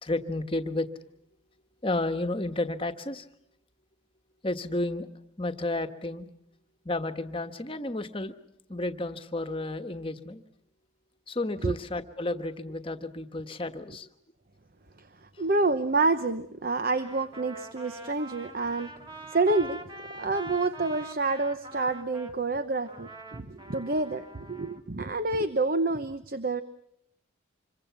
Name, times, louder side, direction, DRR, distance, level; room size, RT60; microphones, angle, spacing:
voice 1, 0.0-0.9 1.8-3.3 4.4-5.1 5.4-6.3 6.8-8.3 8.7-10.4 11.3-14.1 15.4-15.5, left 2 dB, 25° left, 8 dB, 1.3 m, -32 dB
voice 2, 15.0-19.0 19.3-19.8 20.1-26.6, right 3 dB, 45° right, 11 dB, 0.9 m, -28 dB
Trumpet, 16.8-22.4 22.9-24.8, right 2 dB, 20° right, 2.0 m, -44 dB
26.5 x 23.5 x 7.1 m, 0.76 s
head